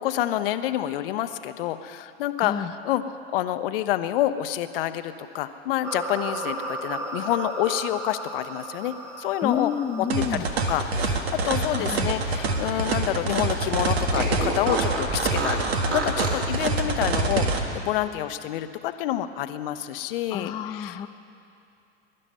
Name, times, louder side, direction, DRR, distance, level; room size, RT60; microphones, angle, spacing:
voice 1, 0.0-9.7 10.3-10.4 10.7-21.1, left 13 dB, 55° left, 11 dB, 0.9 m, -28 dB
voice 2, 2.4-2.7 9.4-10.4 11.7-12.1 20.3-21.1, left 8 dB, 15° left, 8 dB, 0.4 m, -29 dB
sound 1, 5.8-14.4, right 2 dB, 10° right, 2.4 m, -37 dB
sound 2, 10.1-17.6, right 3 dB, 70° right, 1.6 m, -26 dB
Fart, 11.1-13.2 13.5-13.6 14.1-16.5, right 3 dB, 35° right, 2.9 m, -31 dB
22.0 x 12.0 x 5.6 m, 2.6 s
figure-of-eight pair, 90°, 33 cm